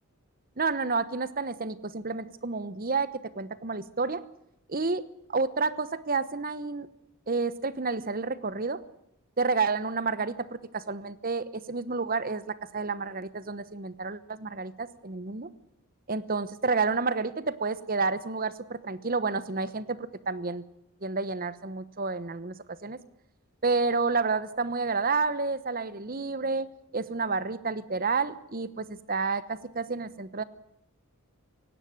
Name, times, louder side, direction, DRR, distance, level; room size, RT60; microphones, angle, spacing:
voice 1, 0.6-4.2 4.7-5.0 5.3-6.9 7.3-8.8 9.4-15.5 16.1-20.6 21.0-23.0 23.6-26.7 26.9-30.4, right 4 dB, 40° right, 15 dB, 1.0 m, -30 dB
18.5 x 16.5 x 9.3 m, 0.82 s
head